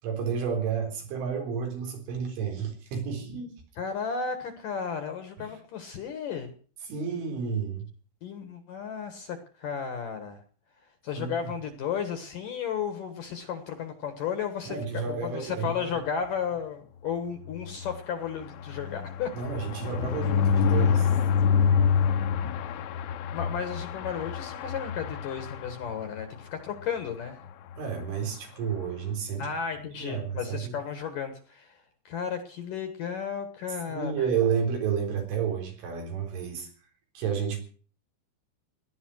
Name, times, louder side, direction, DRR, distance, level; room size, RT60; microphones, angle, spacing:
voice 1, 0.0-3.5 5.4-5.5 6.9-7.9 11.2-11.3 14.7-15.7 19.3-21.1 27.8-29.5 30.0-30.7 33.9-36.7 37.2-37.6, right 6 dB, 85° right, 2 dB, 6.5 m, -31 dB
voice 2, 3.8-6.5 8.2-10.4 11.0-19.3 23.0-27.4 29.4-34.3, left 7 dB, 60° left, 8 dB, 2.4 m, -34 dB
sound 1, 17.4-26.2 26.7-26.8 27.1-27.2 27.5-27.7, left 7 dB, 85° left, 3.5 m, -27 dB
18.0 x 11.5 x 6.3 m, 0.42 s
omnidirectional pair, 5.4 m